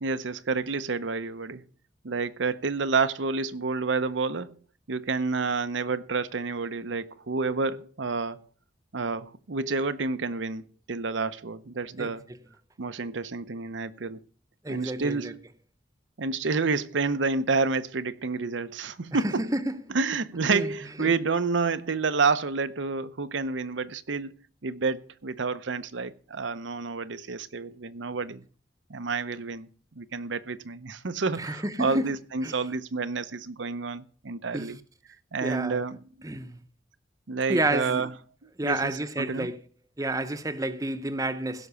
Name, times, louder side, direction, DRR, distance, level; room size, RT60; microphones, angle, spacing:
voice 1, 0.0-1.6 2.0-4.6 4.9-8.4 8.9-12.2 12.8-14.2 14.7-15.4 16.2-19.4 19.9-24.4 24.6-28.4 28.9-29.7 30.0-34.8 35.3-36.0 37.3-38.1 38.4-39.5, right 4 dB, 85° right, 0.8 m, -29 dB
voice 2, 14.6-15.3 19.1-19.8 20.5-20.7 21.0-21.1 31.4-32.1 32.4-32.6 34.5-34.7 35.4-35.8 36.2-36.6 37.5-38.1 38.6-39.6 40.0-41.7, right 2 dB, 20° right, 0.7 m, -30 dB
16.0 x 6.0 x 6.8 m
head